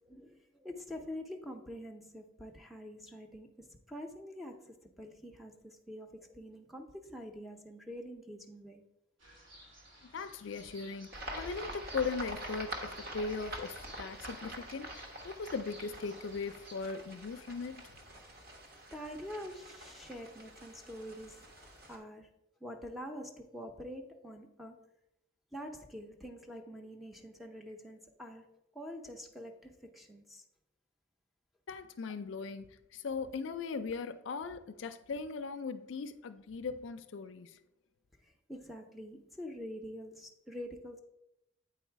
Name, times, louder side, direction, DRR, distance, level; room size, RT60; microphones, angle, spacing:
voice 1, 0.0-8.9 18.9-21.5 21.9-22.3 22.6-24.9 25.5-30.4 38.2-41.0, equal, ahead, 0.6 m, -46 dB
sound 1, 9.2-16.7, right 1 dB, 70° right, 1.7 m, -56 dB
voice 2, 10.0-17.9 31.7-37.6, left 4 dB, 65° left, 0.4 m, -39 dB
sound 2, 11.1-22.0, right 1 dB, 50° right, 1.1 m, -46 dB
8.6 x 4.0 x 4.6 m
head